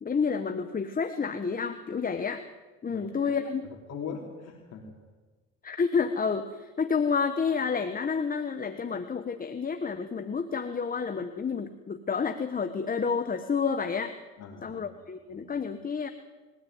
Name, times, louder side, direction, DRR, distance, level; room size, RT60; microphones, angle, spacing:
voice 1, 0.0-2.5 2.8-3.6 5.6-14.1 14.6-16.1, left 5 dB, 30° left, 8 dB, 1.3 m, -29 dB
voice 2, 2.9-3.4 3.9-4.9 14.4-14.8 15.4-15.5, left 6 dB, 55° left, 1 dB, 3.2 m, -40 dB
21.0 x 16.5 x 9.5 m, 1.3 s
supercardioid pair, 80°, 31 cm